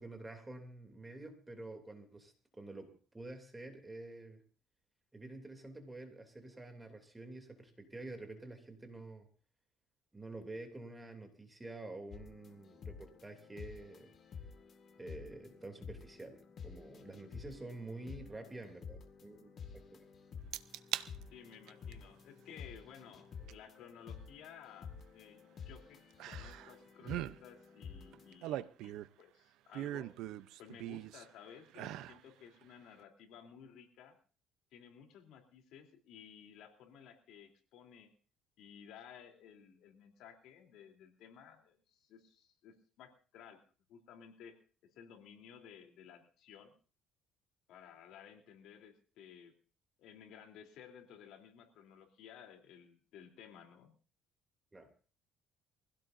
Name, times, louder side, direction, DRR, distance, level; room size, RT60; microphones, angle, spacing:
voice 1, 0.0-4.4 5.1-9.3 10.1-14.1 15.0-20.0 54.7-54.9, right 2 dB, 10° right, 4 dB, 2.8 m, -49 dB
sound 1, 12.1-28.3, left 6 dB, 40° left, 1.9 m, -51 dB
sound 2, 20.5-21.1 21.5-21.9 23.5-23.6 26.2-26.7 27.0-27.4 28.1-29.2 29.7-31.3 31.7-32.2 32.6-32.7, right 13 dB, 75° right, 0.7 m, -41 dB
voice 2, 21.3-26.0 26.3-30.1 30.6-34.2 34.7-38.1 38.6-43.6 43.9-44.6 44.8-46.7 47.7-49.5 50.0-53.9, left 8 dB, 70° left, 3 dB, 3.3 m, -56 dB
23.5 x 16.5 x 2.7 m, 0.38 s
cardioid pair, 140°, 0 cm